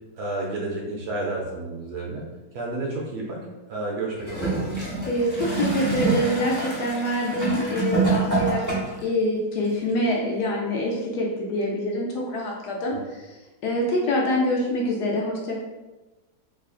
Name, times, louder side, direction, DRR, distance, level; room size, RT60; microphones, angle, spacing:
voice 1, 0.1-2.2 2.5-3.4 3.7-4.6 12.9-13.0, right 2 dB, 70° right, -2 dB, 1.0 m, -30 dB
Gurgling / Toilet flush, 4.2-9.1 9.9-10.0, right 3 dB, 20° left, 0.6 m, -26 dB
voice 2, 5.0-8.6 9.0-13.3 13.6-15.6, left 1 dB, 70° left, -2 dB, 1.1 m, -25 dB
3.1 x 2.4 x 3.6 m, 1.1 s
omnidirectional pair, 2.0 m